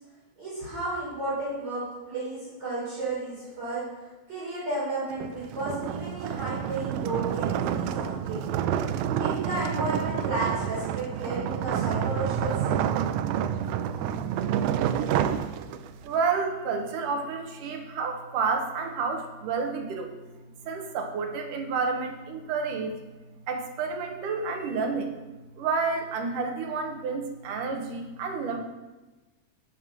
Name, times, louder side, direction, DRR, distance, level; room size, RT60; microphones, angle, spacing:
voice 1, 0.4-8.6 9.2-12.8, right 2 dB, 40° right, -8 dB, 5.1 m, -33 dB
sound 1, 5.1-16.1, right 9 dB, 90° right, 2.5 m, -28 dB
voice 2, 16.0-20.1 20.7-23.0 23.5-25.1 25.6-28.6, right 4 dB, 70° right, 4 dB, 2.6 m, -30 dB
17.0 x 6.1 x 6.0 m, 1.2 s
omnidirectional pair, 4.1 m